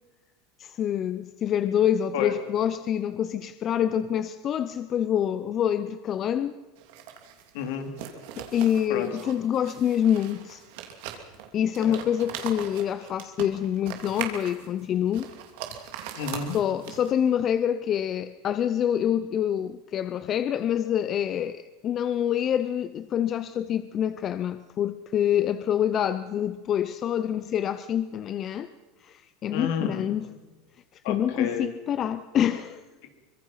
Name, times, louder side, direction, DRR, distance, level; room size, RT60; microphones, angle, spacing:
voice 1, 0.6-6.6 8.4-10.6 11.5-15.3 16.5-28.7 29.0-30.3 31.1-32.8, left 9 dB, 35° left, 13 dB, 0.7 m, -26 dB
sound 1, 6.8-17.3, right 9 dB, 70° right, 2.9 m, -40 dB
voice 2, 7.5-7.9 8.9-9.2 11.8-12.0 16.2-16.6 29.5-30.0 31.0-31.7 33.0-33.1, left 7 dB, 70° left, 6 dB, 3.2 m, -30 dB
24.5 x 21.5 x 5.8 m, 1.2 s
supercardioid pair, 125°, 0 cm